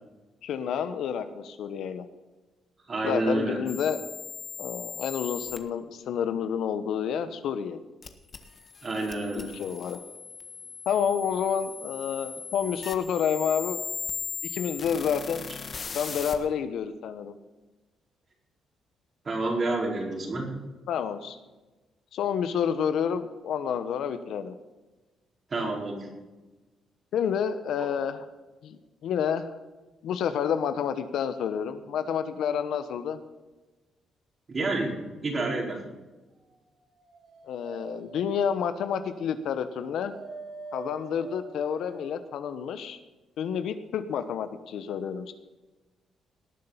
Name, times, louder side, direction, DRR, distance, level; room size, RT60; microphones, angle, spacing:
voice 1, 0.4-2.0 3.0-4.0 4.6-7.8 9.3-10.0 10.9-13.8 14.4-15.4 15.9-17.3 20.9-21.4 22.1-24.5 27.1-28.2 28.6-29.5 30.0-33.2 37.5-40.1 40.7-43.0 43.4-45.3, left 7 dB, 75° left, 11 dB, 1.1 m, -29 dB
voice 2, 2.9-3.6 8.8-9.5 19.2-20.5 25.5-26.1 27.8-27.9 34.5-35.0 35.2-35.8, right 2 dB, 40° right, 0 dB, 4.5 m, -29 dB
sound 1, 3.7-5.6 8.0-16.4, left 5 dB, 45° left, 1.4 m, -38 dB
Dog, 36.7-42.3, right 4 dB, 60° right, 3.2 m, -45 dB
19.0 x 6.8 x 5.7 m, 1.2 s
cardioid pair, 90°, 0 cm